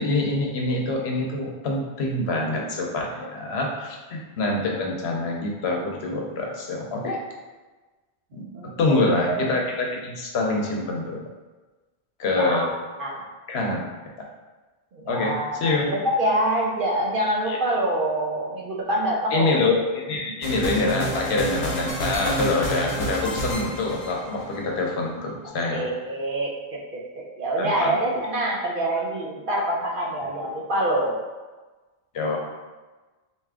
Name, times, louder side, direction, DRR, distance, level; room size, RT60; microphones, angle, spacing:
voice 1, 0.0-7.2 8.3-8.4 8.8-11.2 12.2-12.7 13.5-13.8 15.1-15.9 17.5-17.6 19.3-25.9 27.6-27.9 32.1-32.4, left 2 dB, 75° left, 0 dB, 0.9 m, -25 dB
voice 2, 8.3-9.4 12.4-13.2 14.9-19.7 25.4-26.6 26.9-31.2, right 1 dB, 60° right, -3 dB, 0.8 m, -26 dB
sound 1, 20.4-24.6, equal, 45° left, 0.7 m, -29 dB
3.3 x 2.7 x 3.5 m, 1.2 s
omnidirectional pair, 1.1 m